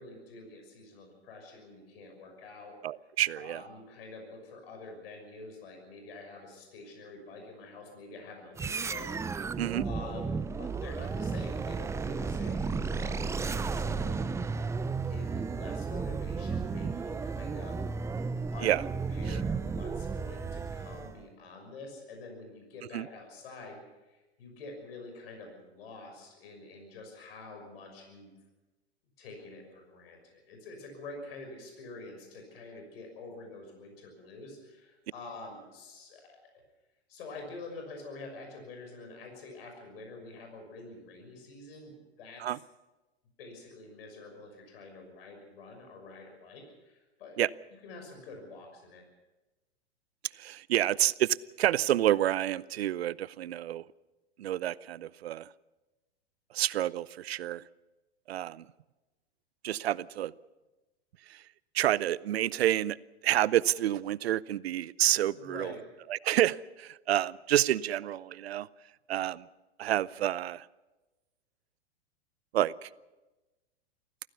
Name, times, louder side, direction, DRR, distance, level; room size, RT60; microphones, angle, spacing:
voice 1, 0.0-2.8 3.4-9.1 9.8-17.8 18.5-28.3 29.2-36.4 37.1-42.6 43.4-47.4 47.8-49.0 65.3-65.8, left 3 dB, 65° left, 3 dB, 6.2 m, -47 dB
voice 2, 2.8-3.6 9.6-9.8 18.6-18.8 19.3-19.4 22.9-23.1 42.4-42.6 47.4-47.5 50.4-53.8 54.4-55.5 56.5-57.6 58.3-58.6 59.6-60.3 61.3-61.4 61.7-63.0 63.2-65.7 66.1-68.7 69.1-69.5 69.8-70.7 72.5-72.9, right 12 dB, 75° right, 21 dB, 0.7 m, -29 dB
sound 1, 8.6-21.2, right 4 dB, 10° right, 0.6 m, -33 dB
24.5 x 16.0 x 7.0 m, 1.1 s
hypercardioid pair, 110°, 32 cm